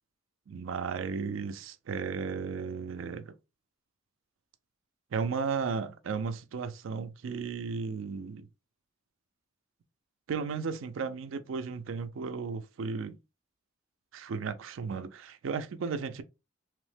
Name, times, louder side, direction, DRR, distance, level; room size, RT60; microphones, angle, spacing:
voice 1, 0.5-3.3 5.1-8.5 10.3-13.2 14.1-16.2, right 5 dB, 75° right, 0.4 m, -34 dB
3.0 x 2.0 x 3.2 m
head